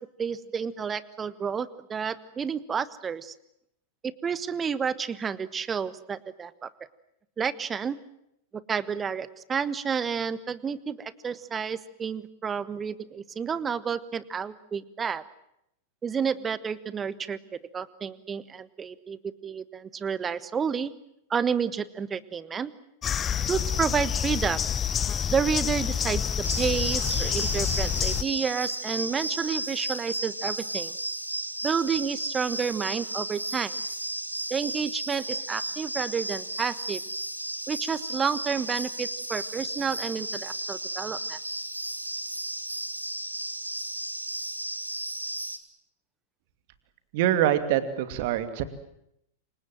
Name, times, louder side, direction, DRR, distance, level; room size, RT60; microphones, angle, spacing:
voice 1, 0.2-3.3 4.0-6.7 7.4-8.0 8.5-15.2 16.0-20.9 21.3-22.7 23.5-24.6 25.3-26.2 26.6-30.9 31.6-33.8 34.5-37.0 37.7-41.4, right 6 dB, 20° right, 17 dB, 1.3 m, -30 dB
sound 1, 23.0-28.2, left 8 dB, 25° left, 1.0 m, -28 dB
sound 2, 26.4-45.6, right 1 dB, 85° right, 1.7 m, -34 dB
voice 2, 47.1-48.6, right 11 dB, 50° right, 11 dB, 2.6 m, -24 dB
28.0 x 25.0 x 7.6 m, 0.77 s
figure-of-eight pair, 95°, 0 cm